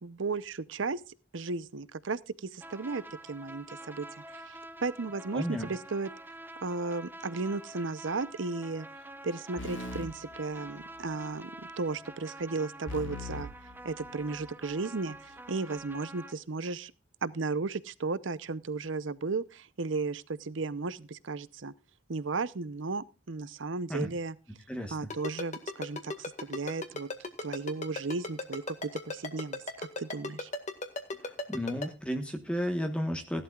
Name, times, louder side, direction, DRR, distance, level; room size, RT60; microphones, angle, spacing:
voice 1, 0.0-4.1 4.3-6.1 6.6-8.9 9.2-13.5 13.8-16.9 17.2-21.7 22.1-24.4 24.9-27.1 27.4-30.5, right 3 dB, 80° right, 0.7 m, -35 dB
sound 1, 2.6-16.3, right 1 dB, 10° right, 1.1 m, -47 dB
voice 2, 5.3-5.7 23.9-24.1 24.7-25.0 31.2-33.4, equal, 5° left, 1.3 m, -33 dB
sound 2, 9.6-11.2 12.9-14.6, left 2 dB, 70° left, 2.6 m, -42 dB
Ringtone, 25.1-31.9, left 2 dB, 40° left, 1.8 m, -35 dB
17.0 x 12.0 x 2.4 m
head